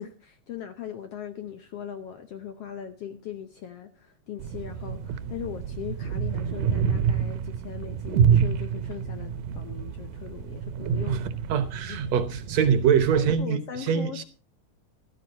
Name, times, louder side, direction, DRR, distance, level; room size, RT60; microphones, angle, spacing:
voice 1, 0.0-11.4 11.9-12.0 13.1-14.2, left 9 dB, 65° left, 1.5 m, -39 dB
sound 1, 4.4-13.3, right 7 dB, 85° right, 2.4 m, -28 dB
voice 2, 11.1-14.2, right 7 dB, 65° right, 1.9 m, -24 dB
14.5 x 13.0 x 4.1 m
omnidirectional pair, 3.7 m